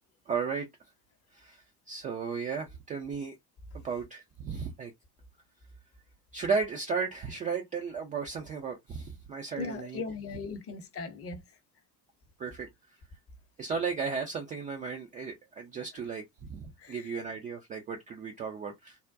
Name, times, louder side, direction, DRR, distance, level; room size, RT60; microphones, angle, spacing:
voice 1, 0.3-0.7 1.3-3.4 3.7-4.9 6.3-10.0 12.4-12.7 13.6-19.0, right 5 dB, 20° right, 0.3 m, -35 dB
voice 2, 9.6-11.4 16.8-17.0, left 4 dB, 30° left, 0.7 m, -38 dB
3.5 x 2.1 x 2.5 m
figure-of-eight pair, 65°, 48 cm